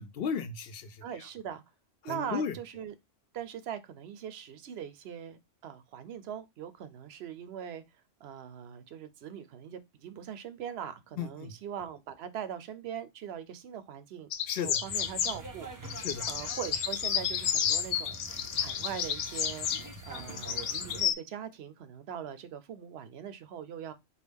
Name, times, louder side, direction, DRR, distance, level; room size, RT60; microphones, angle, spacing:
voice 1, 0.0-1.0 2.0-2.5 11.2-11.5 14.5-14.8 16.0-16.2, left 6 dB, 60° left, 0.8 m, -35 dB
voice 2, 1.0-1.6 2.0-2.9 3.3-7.8 8.2-14.3 14.6-19.7 20.0-23.9, right 9 dB, 65° right, 0.8 m, -41 dB
sound 1, 14.3-15.4 15.8-21.1, left 9 dB, 90° left, 1.0 m, -31 dB
sound 2, 14.8-21.0, right 2 dB, 25° right, 0.4 m, -46 dB
4.6 x 2.5 x 3.4 m
omnidirectional pair, 1.2 m